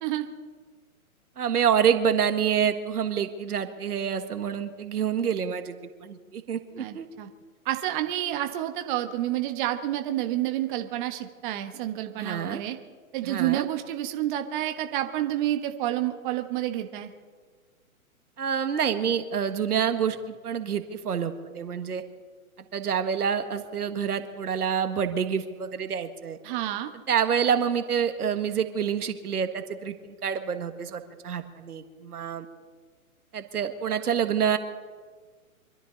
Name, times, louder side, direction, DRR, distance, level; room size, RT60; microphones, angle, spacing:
voice 1, 1.4-5.7 6.0-7.1 12.2-12.6 13.2-13.7 18.4-22.0 22.7-26.4 27.1-32.5 33.3-34.6, right 8 dB, 90° right, 8 dB, 1.7 m, -27 dB
voice 2, 6.8-7.3 7.6-12.8 13.1-17.1 26.4-26.9, right 13 dB, 35° right, 6 dB, 1.3 m, -29 dB
25.0 x 13.5 x 4.0 m, 1.5 s
hypercardioid pair, 145°, 44 cm